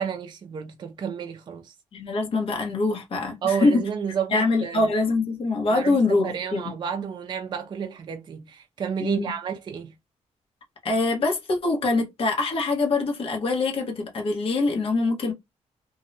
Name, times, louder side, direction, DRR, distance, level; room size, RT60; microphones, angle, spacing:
voice 1, 0.0-1.7 3.4-4.9 5.7-9.9, right 7 dB, 40° right, 0.4 m, -31 dB
voice 2, 1.9-3.8 4.3-6.6 9.0-9.3 10.8-15.3, left 3 dB, 50° left, 1.0 m, -24 dB
2.6 x 2.1 x 2.6 m
cardioid pair, 145°, 12 cm